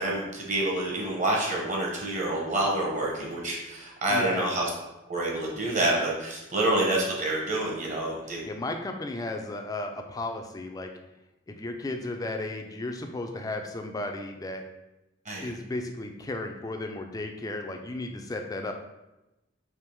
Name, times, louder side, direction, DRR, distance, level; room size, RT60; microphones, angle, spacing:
voice 1, 0.0-4.7 5.1-8.4 15.2-15.5, right 1 dB, 35° right, -2 dB, 1.0 m, -27 dB
voice 2, 4.1-4.5 8.5-10.9 11.5-14.6 15.4-18.7, left 2 dB, 15° left, 4 dB, 0.3 m, -34 dB
3.5 x 2.9 x 4.5 m, 0.98 s
head